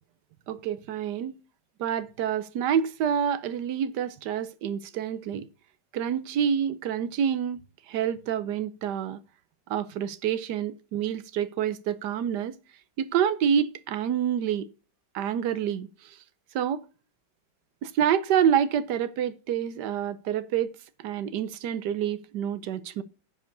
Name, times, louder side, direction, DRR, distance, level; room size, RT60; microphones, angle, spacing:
voice 1, 0.5-1.4 1.8-5.5 5.9-7.6 7.9-9.2 9.7-12.6 13.0-14.7 15.1-16.2 16.5-16.8 17.8-23.0, right 9 dB, 70° right, 1.3 m, -27 dB
10.0 x 4.9 x 6.6 m
omnidirectional pair, 2.0 m